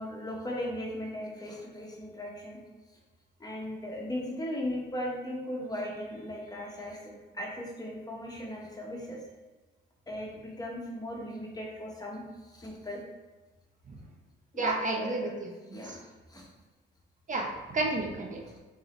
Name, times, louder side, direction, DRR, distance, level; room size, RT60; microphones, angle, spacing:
voice 1, 0.0-2.6 3.4-9.2 10.1-13.0 14.5-15.4 15.7-16.5, left 1 dB, 20° left, -2 dB, 1.1 m, -38 dB
voice 2, 14.6-15.8 17.3-18.4, right 2 dB, 40° right, 0 dB, 0.8 m, -31 dB
4.0 x 3.7 x 3.1 m, 1.2 s
cardioid pair, 90°, 20 cm